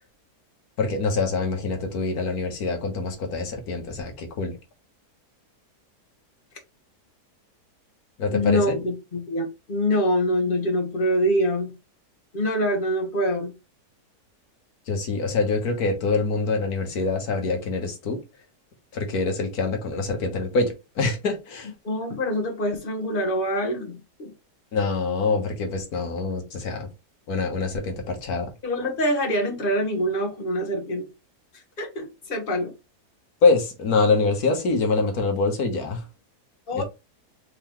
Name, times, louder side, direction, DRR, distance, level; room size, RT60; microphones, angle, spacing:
voice 1, 0.8-4.6 8.2-8.8 14.9-18.2 18.9-21.7 24.7-26.9 27.3-28.5 33.4-36.1 36.7-36.8, left 3 dB, 65° left, 1.7 m, -25 dB
voice 2, 8.3-11.7 12.3-13.5 21.8-24.3 28.6-31.1 31.8-32.7 36.7-36.8, equal, 35° left, 1.5 m, -25 dB
4.6 x 3.7 x 3.1 m
omnidirectional pair, 1.7 m